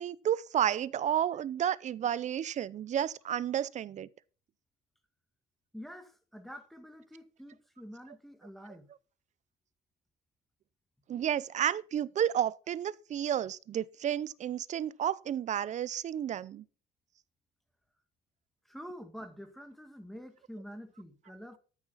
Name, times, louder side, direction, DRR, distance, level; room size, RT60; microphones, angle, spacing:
voice 1, 0.0-4.1 11.1-16.6, right 10 dB, 45° right, 0.6 m, -31 dB
voice 2, 5.7-8.9 18.7-21.6, equal, ahead, 1.9 m, -47 dB
13.0 x 6.1 x 5.6 m
cardioid pair, 110°, 17 cm